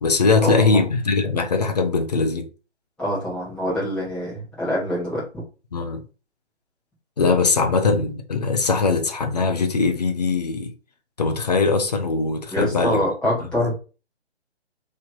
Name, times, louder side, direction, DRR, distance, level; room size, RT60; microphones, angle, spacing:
voice 1, 0.0-2.5 5.7-6.0 7.2-10.7 11.2-13.0 13.5-13.7, left 4 dB, 35° left, 0.6 m, -21 dB
voice 2, 3.0-5.2 7.6-7.7 7.9-8.0 12.5-13.7, equal, 5° left, 1.1 m, -25 dB
3.2 x 2.8 x 4.0 m
figure-of-eight pair, 140°, 34 cm